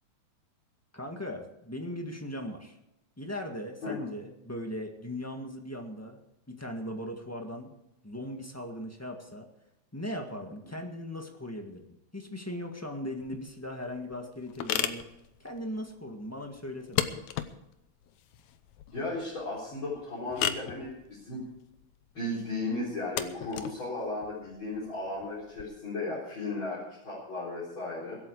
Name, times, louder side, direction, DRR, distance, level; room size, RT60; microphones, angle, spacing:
voice 1, 0.9-2.8 3.2-6.2 6.5-7.7 8.0-9.5 9.9-11.8 12.1-15.0 15.4-17.0, left 1 dB, 10° left, 2 dB, 1.0 m, -38 dB
sound 1, 13.2-25.6, left 11 dB, 80° left, 2.2 m, -37 dB
voice 2, 18.9-21.4 22.1-28.2, left 2 dB, 40° left, -7 dB, 4.7 m, -35 dB
23.0 x 8.5 x 4.8 m, 0.88 s
omnidirectional pair, 3.3 m